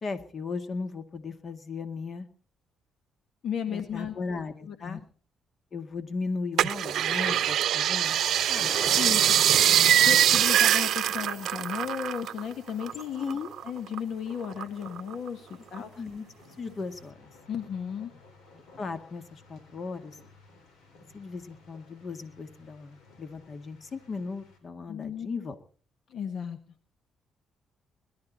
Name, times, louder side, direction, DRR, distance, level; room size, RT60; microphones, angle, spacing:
voice 1, 0.0-2.3 3.7-5.0 5.7-8.2 8.5-8.7 13.2-13.5 16.0-16.2 16.6-17.3 18.8-20.2 21.1-25.6, left 4 dB, 45° left, 9 dB, 2.0 m, -36 dB
voice 2, 3.4-4.1 4.7-5.0 8.9-13.2 13.6-16.0 17.5-18.1 24.9-25.3 26.1-26.6, left 8 dB, 65° left, 8 dB, 1.6 m, -35 dB
sound 1, 6.6-12.4 12.7-14.0 14.4-15.3 15.8-15.9, right 11 dB, 75° right, 0.7 m, -23 dB
Thunder, 7.1-24.6, left 3 dB, 85° left, 4.8 m, -49 dB
21.5 x 12.0 x 4.1 m, 0.41 s
cardioid pair, 90°, 0 cm